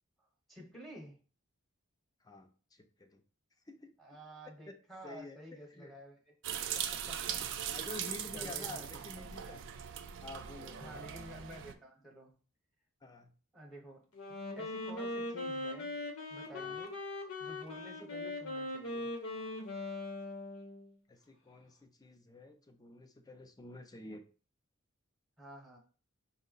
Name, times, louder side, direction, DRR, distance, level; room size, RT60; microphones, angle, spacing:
voice 1, 0.5-1.2 4.0-6.4 6.7-7.7 8.3-9.4 10.8-12.3 13.5-14.1 14.6-16.0 16.3-17.0 17.4-19.1 25.4-25.8, equal, ahead, -1 dB, 0.9 m, -51 dB
voice 2, 2.2-3.2 3.7-3.9 4.7-4.8 5.0-5.4 5.8-5.9 7.7-9.6 10.2-11.0 13.0-13.3 16.5-16.8 21.1-24.2, left 2 dB, 20° left, 6 dB, 0.4 m, -49 dB
sound 1, 6.4-11.7, right 9 dB, 60° right, 0.4 m, -40 dB
Wind instrument woodwind instrument, 14.1-20.9, left 2 dB, 75° left, 1.0 m, -40 dB
5.3 x 2.1 x 3.8 m, 0.39 s
head